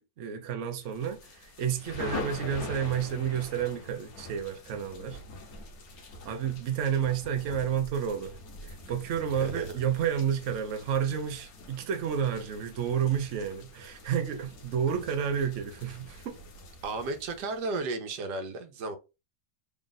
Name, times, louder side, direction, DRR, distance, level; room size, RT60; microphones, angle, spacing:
voice 1, 0.0-5.2 6.2-16.4, right 8 dB, 60° right, 0.8 m, -30 dB
sound 1, 0.8-17.8, left 3 dB, 60° left, 1.3 m, -44 dB
voice 2, 9.3-9.7 16.8-19.0, right 3 dB, 75° right, 1.3 m, -34 dB
3.6 x 2.4 x 3.8 m
omnidirectional pair, 1.8 m